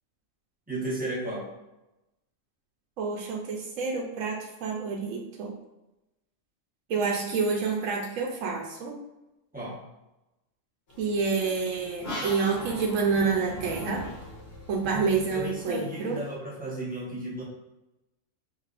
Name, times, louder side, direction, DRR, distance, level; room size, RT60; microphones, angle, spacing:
voice 1, 0.7-1.5 9.5-9.8 14.9-17.4, right 1 dB, 5° right, -6 dB, 0.9 m, -34 dB
voice 2, 3.0-5.5 6.9-9.0 11.0-14.0 14.7-16.2, right 5 dB, 75° right, -1 dB, 1.0 m, -28 dB
sound 1, 10.9-16.4, left 1 dB, 50° left, 1.2 m, -40 dB
4.7 x 3.2 x 2.4 m, 0.97 s
omnidirectional pair, 1.4 m